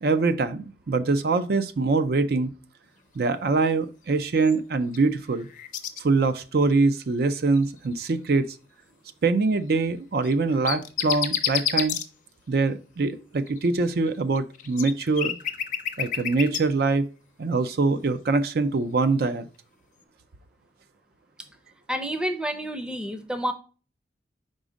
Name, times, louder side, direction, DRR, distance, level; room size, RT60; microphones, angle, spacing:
voice 1, 0.0-2.5 3.2-5.5 6.0-8.6 9.2-12.0 12.5-15.4 16.0-17.0 17.4-19.5, right 3 dB, 60° right, 0.4 m, -23 dB
sound 1, 4.4-5.0 5.3-6.0 6.4-6.6 7.5-7.9 10.2-12.0 13.5-16.6, left 9 dB, 45° left, 0.6 m, -29 dB
voice 2, 21.9-23.5, equal, 5° right, 0.6 m, -29 dB
5.0 x 3.8 x 4.9 m
head